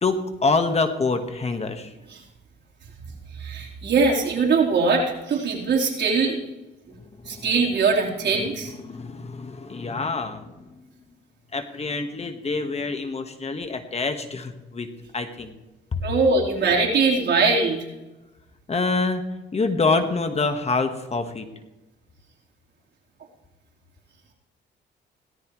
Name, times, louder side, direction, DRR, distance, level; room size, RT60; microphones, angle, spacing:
voice 1, 0.0-1.9 8.8-10.5 11.5-14.9 15.1-15.5 15.9-16.0 18.7-19.2 19.5-21.5, left 3 dB, 30° left, 7 dB, 1.6 m, -26 dB
voice 2, 3.4-6.4 7.3-8.7 16.0-17.8, right 4 dB, 60° right, -2 dB, 4.2 m, -21 dB
17.5 x 14.0 x 3.2 m, 1.0 s
cardioid pair, 90°, 20 cm